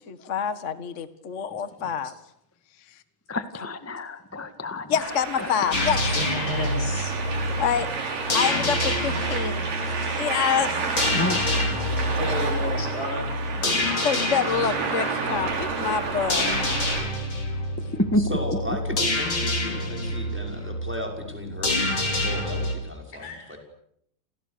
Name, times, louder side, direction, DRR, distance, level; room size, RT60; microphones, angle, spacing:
voice 1, 0.1-2.1 4.9-6.0 7.6-7.9 8.3-10.7 14.0-16.5, left 7 dB, 55° left, 11 dB, 0.7 m, -27 dB
voice 2, 3.3-5.1 5.4-5.9 11.1-11.5 13.6-13.9 17.9-18.3, left 1 dB, 15° left, 9 dB, 0.4 m, -29 dB
sound 1, 5.0-17.0, right 4 dB, 70° right, 5.9 m, -30 dB
sound 2, 5.7-22.7, left 1 dB, 35° left, 6.0 m, -28 dB
voice 3, 6.2-7.1 12.0-13.3 23.2-23.5, left 1 dB, 90° left, 4 dB, 9.1 m, -31 dB
voice 4, 18.2-23.6, left 1 dB, 5° right, 2 dB, 5.6 m, -35 dB
30.0 x 28.5 x 6.9 m, 0.72 s
omnidirectional pair, 4.0 m